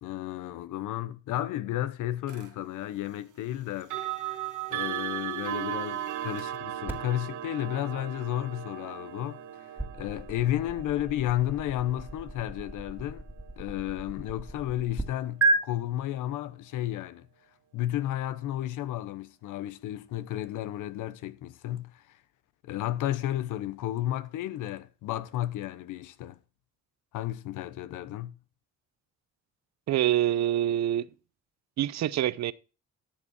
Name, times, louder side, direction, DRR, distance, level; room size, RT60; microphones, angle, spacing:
voice 1, 0.0-3.9 4.2-4.4 4.7-13.2 13.6-17.3 17.7-22.2 22.6-26.4 27.1-28.4, left 13 dB, 85° left, 0.9 m, -32 dB
sound 1, 2.3-2.5 3.8-14.7, right 12 dB, 80° right, 1.7 m, -38 dB
sound 2, 6.9-15.0 15.4-15.6, right 3 dB, 5° right, 2.2 m, -34 dB
voice 2, 29.9-31.1 31.8-32.5, right 12 dB, 65° right, 0.7 m, -26 dB
12.5 x 7.3 x 4.3 m
cardioid pair, 90°, 30 cm